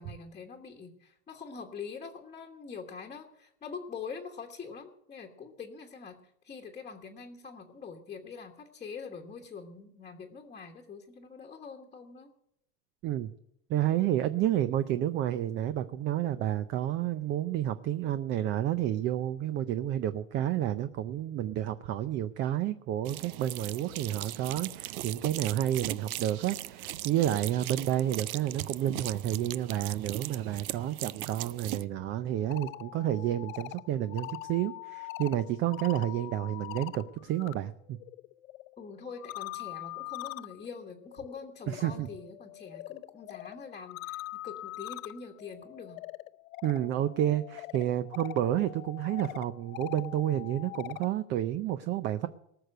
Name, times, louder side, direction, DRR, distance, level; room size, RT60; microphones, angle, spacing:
voice 1, 0.0-6.2 6.4-12.3 38.8-46.0, left 5 dB, 15° left, 2 dB, 1.3 m, -44 dB
voice 2, 13.7-38.0 41.7-42.1 46.6-52.3, right 12 dB, 30° right, 13 dB, 0.5 m, -30 dB
sound 1, 23.0-31.8, right 15 dB, 85° right, 0.7 m, -39 dB
sound 2, 32.3-37.6 37.9-51.1, left 19 dB, 70° left, 0.6 m, -43 dB
19.0 x 6.7 x 7.7 m, 0.77 s
supercardioid pair, 135°, 42 cm